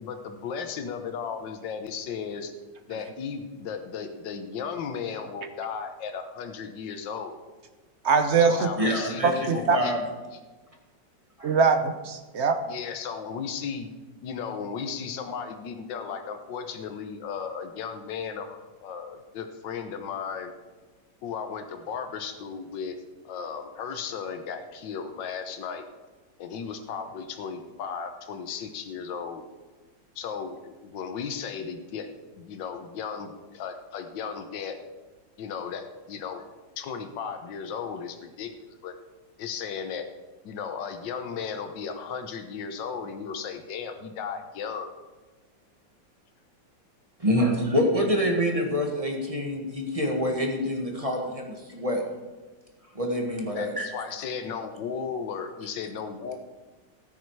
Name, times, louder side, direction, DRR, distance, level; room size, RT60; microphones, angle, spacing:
voice 1, 0.0-2.5 2.9-7.4 8.4-9.9 12.7-13.9 14.2-20.5 21.2-23.0 23.2-25.8 26.4-29.4 30.1-32.1 32.3-34.8 35.4-36.4 36.8-38.9 39.4-40.1 40.4-44.9 53.5-56.4, left 6 dB, 75° left, 6 dB, 1.7 m, -35 dB
voice 2, 8.0-8.7 9.2-9.8 11.4-12.6, right 5 dB, 50° right, 8 dB, 0.9 m, -22 dB
voice 3, 8.8-9.3 9.7-10.0 11.4-11.6 47.2-52.0 52.9-54.0, equal, 20° right, 1 dB, 1.6 m, -26 dB
13.5 x 9.9 x 4.7 m, 1.2 s
omnidirectional pair, 2.0 m